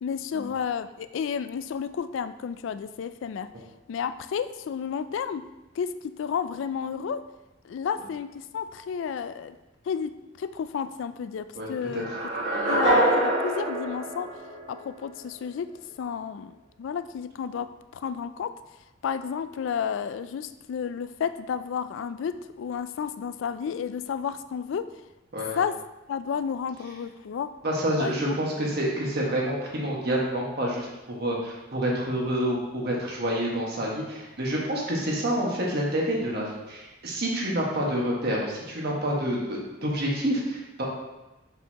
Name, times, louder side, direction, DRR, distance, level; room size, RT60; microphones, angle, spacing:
voice 1, 0.0-3.5 3.9-5.5 5.8-7.3 7.6-9.6 9.9-12.1 12.7-14.3 14.7-15.7 16.0-18.6 19.0-24.9 25.6-27.5 28.0-28.4, left 7 dB, 75° left, 12 dB, 0.3 m, -31 dB
voice 2, 11.5-12.0 12.5-12.7 25.3-25.6 27.6-40.8, right 1 dB, 55° right, -3 dB, 1.5 m, -28 dB
sound 1, 12.0-15.1, right 2 dB, 85° right, 2.1 m, -25 dB
6.4 x 5.4 x 2.9 m, 1.0 s
head